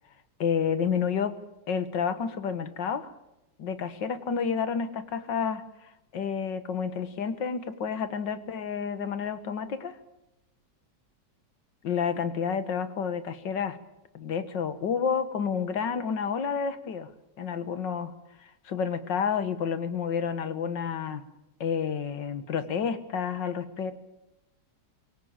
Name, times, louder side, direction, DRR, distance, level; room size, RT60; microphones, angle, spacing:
voice 1, 0.4-1.3 1.7-3.1 3.6-10.0 11.8-13.8 14.1-17.1 17.4-18.1 18.4-21.2 21.6-23.9, left 6 dB, 85° left, 12 dB, 2.1 m, -30 dB
24.0 x 17.0 x 8.8 m, 0.92 s
omnidirectional pair, 1.9 m